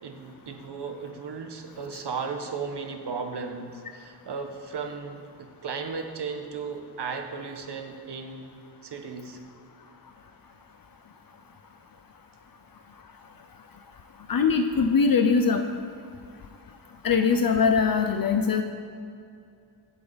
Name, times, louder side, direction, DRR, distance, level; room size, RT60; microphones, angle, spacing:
voice 1, 0.0-8.6 8.8-9.4, right 5 dB, 85° right, 4 dB, 1.4 m, -35 dB
voice 2, 14.3-15.7 17.0-18.6, left 5 dB, 60° left, 6 dB, 0.8 m, -22 dB
24.0 x 8.2 x 4.1 m, 2.4 s
wide cardioid pair, 165°, 40 cm